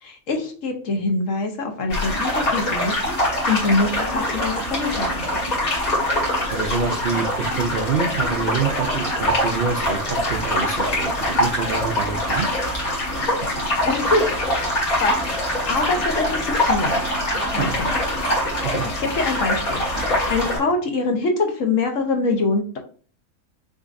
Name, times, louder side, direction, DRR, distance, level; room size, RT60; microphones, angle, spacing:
voice 1, 0.0-5.4 13.8-14.3 14.6-14.7 15.0-15.2 15.7-16.9 17.5-17.9 18.8-22.8, left 3 dB, 65° left, 3 dB, 1.3 m, -24 dB
sound 1, 1.9-20.6, left 1 dB, 85° left, 2.3 m, -23 dB
voice 2, 6.5-12.5 13.2-13.3 17.6-17.8 18.6-18.9, right 5 dB, 60° right, 2 dB, 0.5 m, -26 dB
6.3 x 2.9 x 2.5 m, 0.42 s
omnidirectional pair, 1.5 m